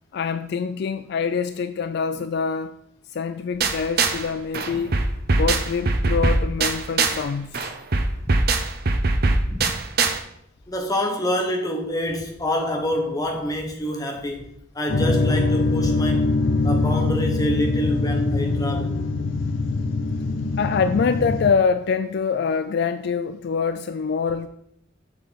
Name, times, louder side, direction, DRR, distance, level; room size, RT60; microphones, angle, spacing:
voice 1, 0.1-2.7 3.1-4.9 5.3-7.7 20.6-24.5, left 5 dB, 60° left, 11 dB, 0.3 m, -25 dB
sound 1, 3.6-4.3 4.5-7.3 7.5-10.2, right 3 dB, 55° right, 0.8 m, -22 dB
voice 2, 10.7-14.5 14.7-16.3 16.6-18.9, equal, 20° left, 2 dB, 1.2 m, -27 dB
sound 2, 14.9-21.5, left 2 dB, 85° left, 0.8 m, -23 dB
7.2 x 6.7 x 4.0 m, 0.74 s
head